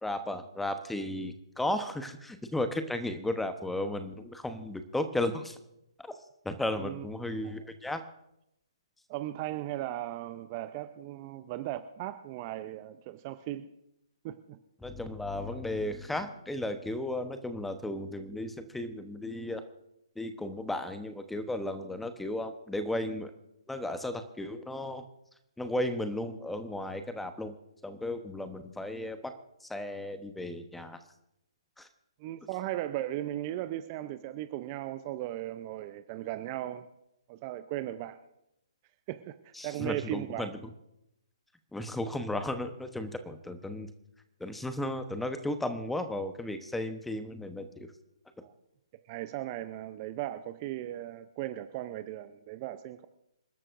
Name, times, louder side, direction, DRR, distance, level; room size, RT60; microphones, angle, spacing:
voice 1, 0.0-5.6 6.0-6.1 6.4-8.0 14.8-19.6 20.2-23.3 23.7-25.0 25.6-27.5 27.8-29.3 29.6-31.0 31.8-31.9 39.5-40.6 41.7-43.9 44.4-47.9, left 1 dB, 5° left, 9 dB, 0.9 m, -34 dB
voice 2, 9.1-13.7 14.2-14.6 32.2-36.9 37.3-38.2 39.1-40.5 48.4-48.5 49.1-53.1, right 14 dB, 30° right, 11 dB, 0.6 m, -37 dB
27.0 x 12.0 x 2.6 m, 0.83 s
figure-of-eight pair, 135°, 3 cm